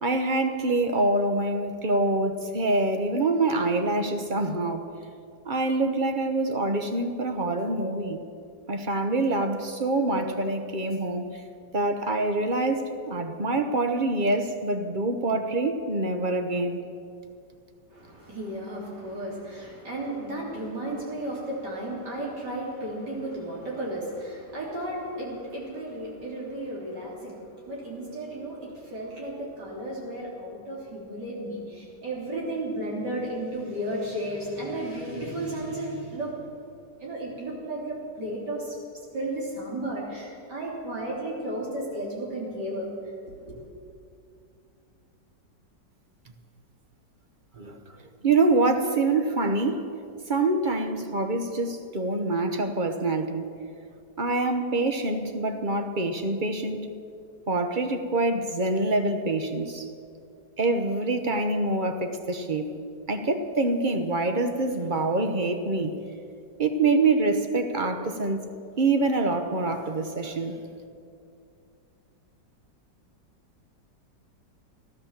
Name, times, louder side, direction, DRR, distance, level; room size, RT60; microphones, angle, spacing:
voice 1, 0.0-4.9 5.5-8.2 8.7-11.3 11.7-16.8 47.6-48.0 48.2-49.9 50.3-53.4 54.2-56.9 57.5-59.9 60.6-62.8 63.1-66.0 66.6-68.5 68.8-70.6, right 2 dB, 35° right, 6 dB, 0.8 m, -25 dB
voice 2, 17.9-36.3 37.0-38.8 39.1-42.9 43.5-43.6, right 1 dB, 65° right, -3 dB, 4.0 m, -34 dB
16.5 x 12.0 x 7.4 m, 2.5 s
omnidirectional pair, 2.0 m